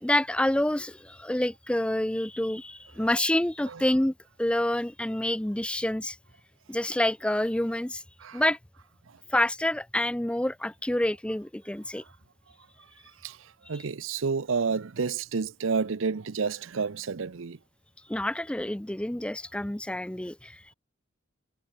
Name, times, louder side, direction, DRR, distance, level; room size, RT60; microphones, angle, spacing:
voice 1, 0.0-6.2 6.7-8.0 8.3-8.6 9.3-12.0 13.7-13.8 18.1-20.7, left 1 dB, 5° left, 0.4 m, -28 dB
voice 2, 13.7-17.6, right 5 dB, 80° right, 0.7 m, -29 dB
head